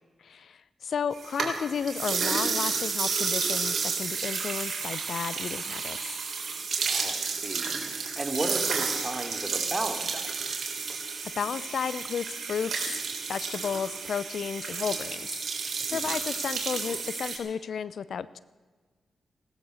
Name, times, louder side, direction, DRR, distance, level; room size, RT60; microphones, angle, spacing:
voice 1, 0.2-6.1 11.4-13.0 13.3-15.5 15.9-18.4, left 7 dB, 70° left, 17 dB, 0.6 m, -33 dB
sound 1, 1.1-17.4, right 5 dB, 65° right, 3.5 m, -31 dB
voice 2, 6.9-10.4 15.9-16.2, right 2 dB, 25° right, 5 dB, 2.8 m, -35 dB
18.0 x 12.5 x 6.5 m, 1.4 s
cardioid pair, 55°, 0 cm